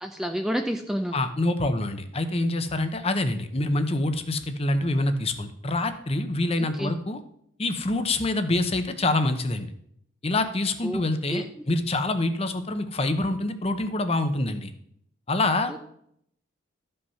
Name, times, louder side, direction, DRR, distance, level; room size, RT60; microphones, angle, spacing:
voice 1, 0.0-1.2 6.8-6.9 10.8-11.0 11.3-11.4 15.7-15.8, equal, 5° right, 4 dB, 0.6 m, -29 dB
voice 2, 1.1-7.2 7.6-9.7 10.2-14.7 15.3-15.7, left 2 dB, 30° left, 9 dB, 0.9 m, -26 dB
13.0 x 5.5 x 5.7 m, 0.71 s
head